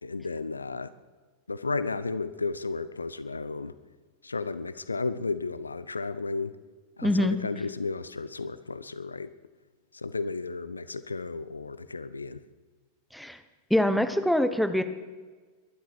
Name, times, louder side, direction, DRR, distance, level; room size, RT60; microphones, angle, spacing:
voice 1, 0.0-0.9 1.5-3.7 4.2-6.5 7.0-9.3 9.9-12.4, left 3 dB, 80° left, 15 dB, 0.6 m, -33 dB
voice 2, 7.0-7.4 13.1-13.4 13.7-14.8, left 1 dB, ahead, 9 dB, 1.1 m, -24 dB
22.0 x 11.5 x 4.7 m, 1.4 s
figure-of-eight pair, 90°, 0 cm